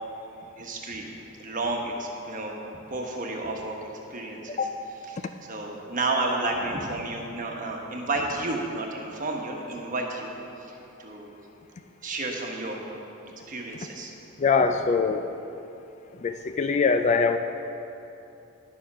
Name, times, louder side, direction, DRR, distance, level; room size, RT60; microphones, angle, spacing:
voice 1, 0.6-1.1 1.4-2.5 2.9-4.7 5.0-5.2 5.5-11.3 12.0-12.8 13.5-14.1, right 2 dB, 35° right, 1 dB, 1.2 m, -31 dB
voice 2, 14.4-15.2 16.2-17.4, left 5 dB, 30° left, 8 dB, 0.3 m, -22 dB
10.5 x 7.0 x 6.1 m, 2.8 s
head